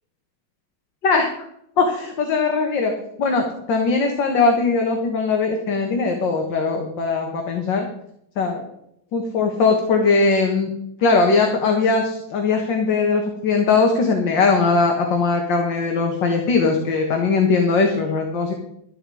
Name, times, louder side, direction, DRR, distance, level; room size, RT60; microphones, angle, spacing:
voice 1, 1.8-2.9 3.2-7.9 8.4-8.6 9.1-10.7 11.0-18.5, left 4 dB, 65° left, 3 dB, 2.2 m, -20 dB
13.0 x 11.0 x 4.9 m, 0.75 s
omnidirectional pair, 2.1 m